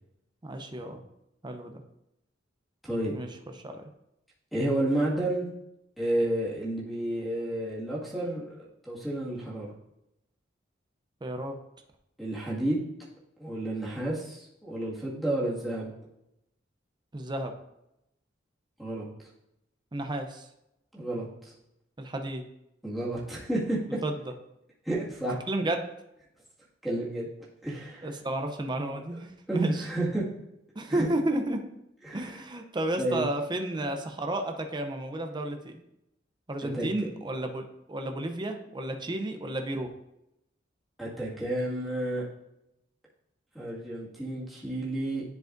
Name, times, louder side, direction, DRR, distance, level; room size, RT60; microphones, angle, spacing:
voice 1, 0.4-1.0 1.4-1.8 3.1-3.3 3.6-3.9 11.2-11.6 17.1-17.5 19.9-20.5 22.0-22.4 24.0-24.1 25.5-25.8 28.0-29.9 30.8-31.6 32.1-35.7 36.5-39.9, right 1 dB, 25° right, 5 dB, 0.6 m, -32 dB
voice 2, 2.8-3.1 4.5-5.5 6.0-9.7 12.2-12.8 13.4-15.9 18.8-19.0 20.9-21.5 22.8-23.8 24.8-25.4 26.8-27.3 27.6-28.1 29.5-30.2 30.9-31.1 32.0-32.4 33.0-33.3 36.7-36.9 41.0-42.2 43.5-45.2, right 1 dB, ahead, -6 dB, 1.9 m, -31 dB
10.5 x 4.7 x 2.6 m, 0.85 s
head